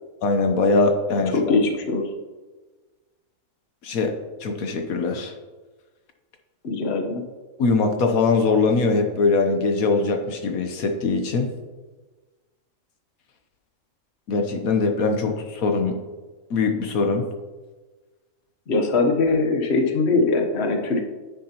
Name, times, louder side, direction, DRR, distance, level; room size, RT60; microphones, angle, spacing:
voice 1, 0.2-1.3 3.8-4.1 4.4-5.3 7.6-11.5 14.3-16.0 16.5-17.3, left 3 dB, 75° left, 4 dB, 1.3 m, -22 dB
voice 2, 1.3-2.0 6.6-7.2 18.7-21.0, left 3 dB, 50° left, 4 dB, 1.3 m, -21 dB
10.5 x 9.3 x 2.9 m, 1.3 s
omnidirectional pair, 1.5 m